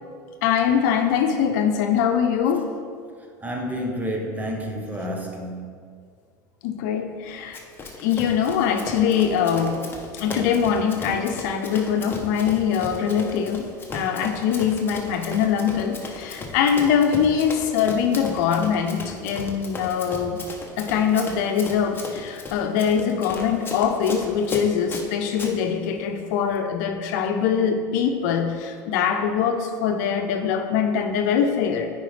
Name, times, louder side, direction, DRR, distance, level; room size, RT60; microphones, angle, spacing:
voice 1, 0.4-2.7 6.6-7.6 8.0-9.8 10.1-13.7 13.9-20.4 20.8-31.9, left 7 dB, 70° left, 0.7 m, -23 dB
voice 2, 3.4-5.7, equal, 15° right, 1.1 m, -29 dB
Run, 7.5-25.5, left 3 dB, 20° left, 1.1 m, -36 dB
9.2 x 5.1 x 3.3 m
supercardioid pair, 105°, 10 cm